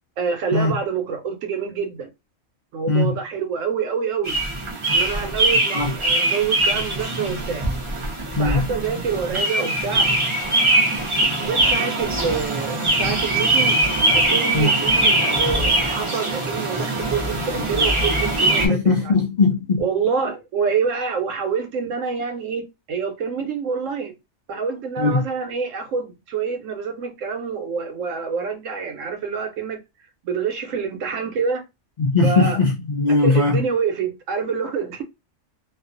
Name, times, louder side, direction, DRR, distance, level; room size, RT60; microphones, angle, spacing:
voice 1, 0.2-2.1 2.7-4.4 4.9-7.7 8.4-10.1 11.4-13.8 14.1-19.1 19.8-22.6 22.9-24.1 24.5-29.8 30.2-31.6 32.2-32.6 33.1-35.0, right 6 dB, 90° right, 1.0 m, -26 dB
sound 1, 4.2-18.7, right 2 dB, 30° right, 0.6 m, -21 dB
voice 2, 18.6-19.8 25.0-25.2 32.0-33.6, left 3 dB, 60° left, 0.4 m, -19 dB
2.4 x 2.3 x 2.5 m
omnidirectional pair, 1.3 m